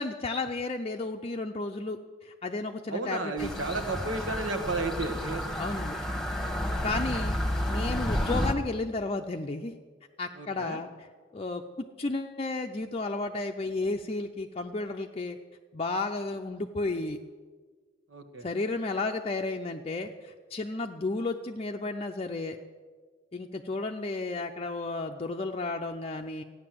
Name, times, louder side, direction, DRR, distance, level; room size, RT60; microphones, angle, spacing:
voice 1, 0.0-3.5 5.6-6.0 6.8-7.4 7.7-9.8 10.2-11.1 11.3-15.4 15.7-17.2 18.4-22.6 23.3-26.4, left 3 dB, 30° left, 3 dB, 0.6 m, -33 dB
voice 2, 2.9-5.4 10.4-10.8 18.1-18.5, right 3 dB, 75° right, 6 dB, 1.5 m, -33 dB
sound 1, 3.4-8.5, left 1 dB, 5° left, 1.3 m, -31 dB
15.0 x 9.7 x 7.7 m, 1.5 s
head